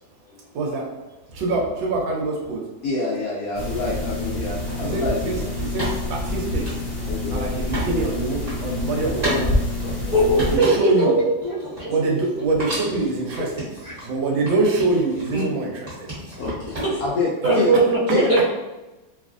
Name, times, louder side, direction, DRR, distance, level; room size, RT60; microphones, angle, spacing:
voice 1, 0.5-1.0 1.3-2.7 4.8-6.8 7.3-9.6 10.3-11.2 11.9-13.7 14.0-16.6, right 3 dB, 80° right, -1 dB, 1.4 m, -25 dB
voice 2, 2.8-5.5 7.0-7.4 9.8-10.1 16.4-17.7 18.1-18.3, left 3 dB, 70° left, -6 dB, 0.8 m, -27 dB
sound 1, 3.5-10.6, left 2 dB, 35° left, 0.6 m, -27 dB
sound 2, 4.7-4.8 5.8-7.9 8.2-8.6 9.2-9.4 9.8-11.1 11.4-12.3 12.6-14.1 14.5-15.5 15.9-17.2, equal, 30° right, 1.2 m, -32 dB
voice 3, 10.1-11.1 11.4-12.2 15.3-15.4 16.8-16.9 17.4-18.5, right 2 dB, 50° right, -11 dB, 0.5 m, -20 dB
3.1 x 2.4 x 2.4 m, 1.1 s
omnidirectional pair, 2.1 m